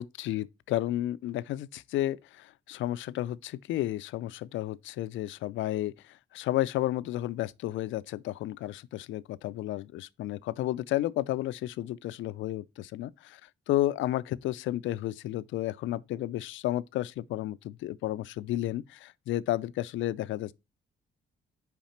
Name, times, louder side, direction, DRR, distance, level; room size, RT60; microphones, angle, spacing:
voice 1, 0.0-20.5, left 14 dB, 75° left, 0.4 m, -32 dB
5.8 x 4.9 x 4.2 m
cardioid pair, 90°, 20 cm